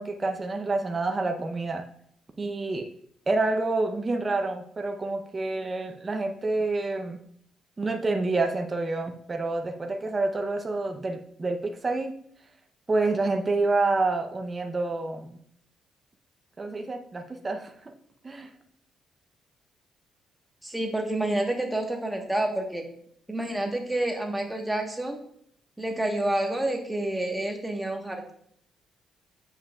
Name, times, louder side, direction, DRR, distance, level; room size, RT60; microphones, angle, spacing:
voice 1, 0.0-1.9 2.4-2.9 3.3-7.2 7.8-12.1 12.9-15.4 16.6-17.9 18.2-18.5, right 3 dB, 30° right, 4 dB, 0.7 m, -28 dB
voice 2, 20.6-22.9 23.3-25.2 25.8-28.3, right 1 dB, 10° right, 2 dB, 1.3 m, -28 dB
8.3 x 5.5 x 2.4 m, 0.66 s
cardioid pair, 90°, 0 cm